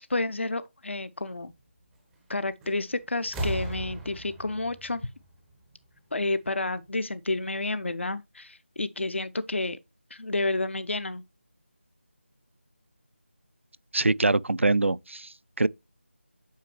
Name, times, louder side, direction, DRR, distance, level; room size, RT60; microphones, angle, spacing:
voice 1, 0.0-1.5 2.3-5.1 6.1-9.8 10.1-11.2, left 2 dB, 70° left, 0.5 m, -30 dB
sound 1, 2.6-2.9 3.2-6.0 7.1-7.2, right 1 dB, 5° right, 0.5 m, -36 dB
voice 2, 13.9-15.7, right 2 dB, 80° right, 0.4 m, -24 dB
8.2 x 5.2 x 3.0 m
figure-of-eight pair, 165°, 7 cm